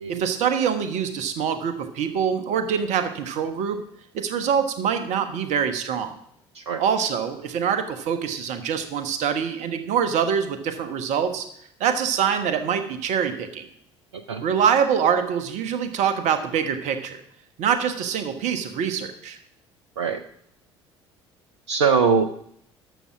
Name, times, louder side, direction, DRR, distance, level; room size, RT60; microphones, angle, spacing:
voice 1, 0.1-3.8 4.1-6.2 6.8-11.5 11.8-13.6 14.4-17.2 17.6-19.4, right 7 dB, 50° right, 9 dB, 1.3 m, -24 dB
voice 2, 14.1-14.4 20.0-20.2 21.7-22.3, right 5 dB, 75° right, 8 dB, 0.6 m, -22 dB
12.0 x 7.1 x 6.0 m, 0.70 s
figure-of-eight pair, 55°, 15 cm